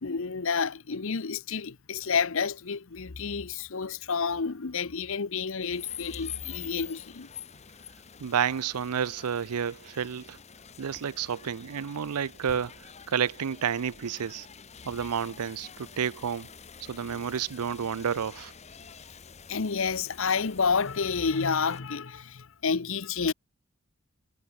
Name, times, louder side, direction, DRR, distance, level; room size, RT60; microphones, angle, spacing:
voice 1, 0.0-7.3 19.5-23.3, left 5 dB, 60° left, 0.8 m, -29 dB
sound 1, 5.7-21.8, left 8 dB, 30° left, 1.2 m, -46 dB
voice 2, 8.2-10.4 10.8-14.5 14.9-16.5 16.8-18.5, right 7 dB, 85° right, 0.5 m, -30 dB
head